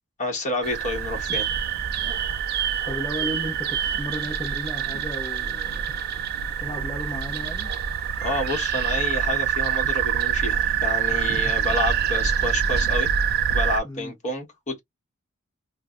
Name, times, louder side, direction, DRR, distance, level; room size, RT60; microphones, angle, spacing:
voice 1, 0.2-1.5 8.2-13.1 13.5-14.8, left 1 dB, 35° left, 1.2 m, -29 dB
sound 1, 0.6-13.8, right 9 dB, 45° right, 0.4 m, -25 dB
voice 2, 2.9-6.0 6.4-7.7 13.8-14.1, left 1 dB, 20° left, 0.7 m, -34 dB
2.5 x 2.1 x 3.6 m
head